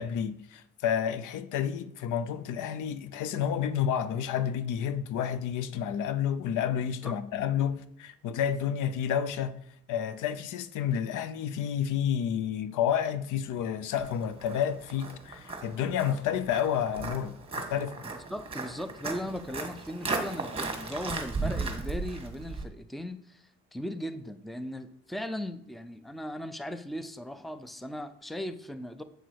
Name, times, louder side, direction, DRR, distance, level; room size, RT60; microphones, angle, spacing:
voice 1, 0.0-9.6 9.9-18.0, left 9 dB, 85° left, 0.7 m, -30 dB
Walk footsteps, 14.0-22.6, right 3 dB, 20° right, 1.6 m, -36 dB
voice 2, 18.3-29.0, equal, ahead, 0.5 m, -38 dB
8.1 x 6.1 x 4.7 m
cardioid pair, 90°, 30 cm